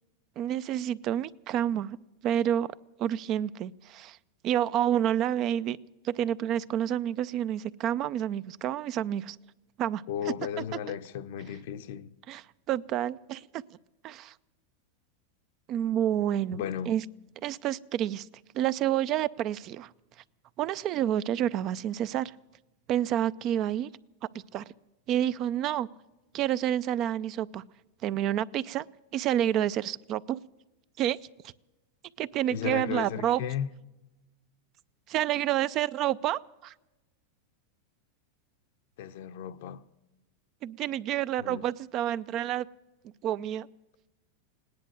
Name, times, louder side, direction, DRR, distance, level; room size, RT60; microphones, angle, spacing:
voice 1, 0.4-2.0 2.2-4.2 4.4-5.8 6.0-9.4 9.8-10.6 12.3-13.6 14.0-14.3 15.7-17.0 17.4-18.3 18.5-19.9 20.6-22.3 22.9-23.9 24.5-24.6 25.1-25.9 26.3-27.6 28.0-28.9 29.1-30.4 31.0-31.2 32.2-33.4 35.1-36.7 40.6-42.7 43.2-43.7, right 11 dB, 40° right, 0.4 m, -29 dB
voice 2, 10.1-12.1 16.5-16.9 32.5-33.7 39.0-39.8 41.4-41.7, left 9 dB, 65° left, 0.8 m, -35 dB
17.5 x 10.5 x 7.7 m
supercardioid pair, 140°, 0 cm